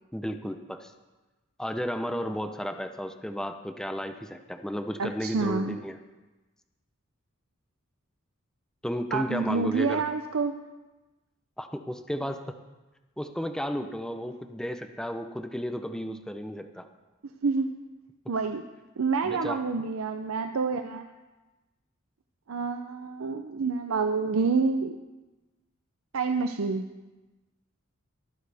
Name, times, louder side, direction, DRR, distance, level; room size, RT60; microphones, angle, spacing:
voice 1, 0.1-0.9 1.6-6.0 8.8-10.0 11.6-12.6 13.2-16.9 19.2-19.6, equal, 5° left, 7 dB, 0.6 m, -33 dB
voice 2, 5.0-5.8 9.1-10.6 17.4-17.7 18.3-18.6 19.0-21.1 22.5-25.0 26.1-26.9, right 4 dB, 85° right, 6 dB, 0.6 m, -28 dB
23.0 x 9.2 x 3.5 m, 1.1 s
head